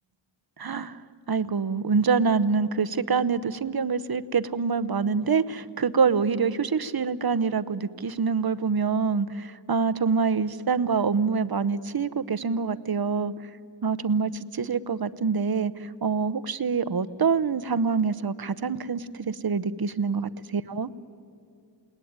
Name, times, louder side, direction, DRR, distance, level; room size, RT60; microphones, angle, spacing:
voice 1, 0.6-1.0 1.3-13.3 13.8-20.9, right 5 dB, 55° right, 16 dB, 0.9 m, -25 dB
28.5 x 19.0 x 9.6 m, 2.5 s
wide cardioid pair, 50°, 44 cm